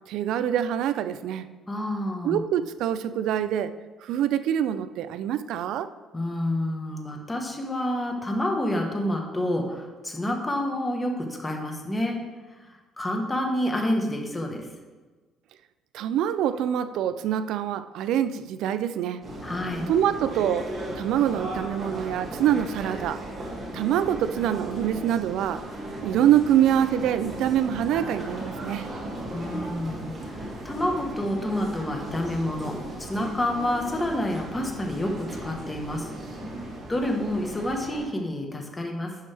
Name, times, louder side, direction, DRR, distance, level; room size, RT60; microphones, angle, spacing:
voice 1, 0.1-1.5 2.2-3.7 4.0-5.9 15.9-19.3 19.9-20.7 21.0-23.2 23.7-25.6 26.0-28.9, right 10 dB, 75° right, 12 dB, 0.4 m, -25 dB
voice 2, 1.7-2.4 6.1-12.2 12.5-14.7 19.4-19.9 29.3-36.1 36.9-39.2, left 1 dB, 15° left, 2 dB, 1.2 m, -28 dB
sound 1, 19.2-38.0, right 1 dB, 30° right, 2.3 m, -36 dB
11.0 x 5.3 x 3.4 m, 1.3 s
cardioid pair, 120°, 0 cm